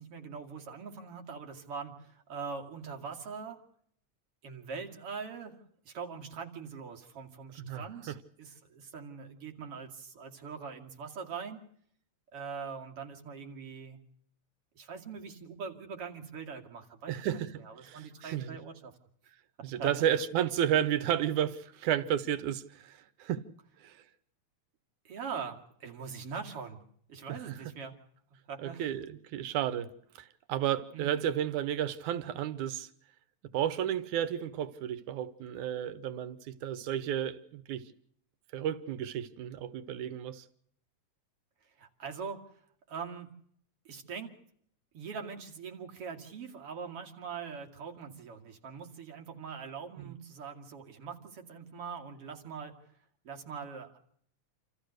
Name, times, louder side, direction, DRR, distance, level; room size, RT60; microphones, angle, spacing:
voice 1, 0.0-3.6 4.4-5.6 5.8-11.6 12.3-14.0 14.7-17.3 17.6-18.9 19.7-20.1 25.0-26.8 27.1-27.9 28.5-28.8 30.9-31.2 41.8-42.4 42.9-43.3 43.8-44.3 44.9-52.7 53.2-54.0, right 5 dB, 50° right, 3.2 m, -42 dB
voice 2, 7.6-8.1 17.1-18.6 19.6-23.4 23.8-24.0 27.3-27.5 28.6-29.9 30.2-32.9 33.5-37.9 38.5-40.4 50.0-50.1, right 10 dB, 90° right, 2.5 m, -32 dB
28.5 x 14.0 x 6.5 m
omnidirectional pair, 3.4 m